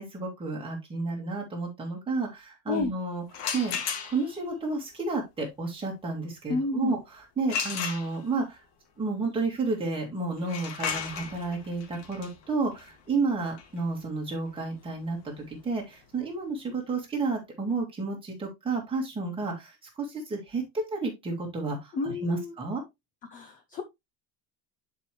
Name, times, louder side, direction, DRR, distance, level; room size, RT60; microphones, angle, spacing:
voice 1, 0.0-3.2 3.5-8.6 9.0-15.2 15.5-22.8, right 3 dB, 10° right, -1 dB, 2.1 m, -31 dB
sound 1, 3.3-4.5 7.5-8.5 10.4-16.1, left 7 dB, 80° left, 1.9 m, -36 dB
voice 2, 6.5-7.0 21.9-22.5 23.3-23.8, left 4 dB, 20° left, 8 dB, 0.3 m, -30 dB
9.8 x 4.9 x 3.0 m, 0.20 s
cardioid pair, 180°, 44 cm